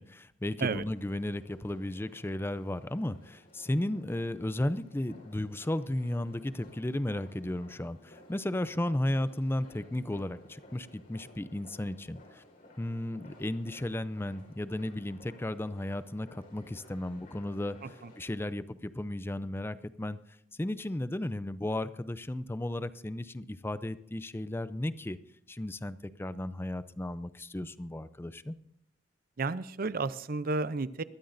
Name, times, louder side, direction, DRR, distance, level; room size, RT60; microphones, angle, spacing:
voice 1, 0.0-12.4 12.8-17.8 18.2-20.2 20.6-25.2 25.5-28.6, left 1 dB, 10° left, 14 dB, 0.5 m, -34 dB
sound 1, 0.9-18.2, left 1 dB, 50° left, 4.6 m, -56 dB
voice 2, 29.4-31.0, right 3 dB, 50° right, 16 dB, 0.6 m, -31 dB
22.0 x 13.0 x 2.6 m, 0.75 s
head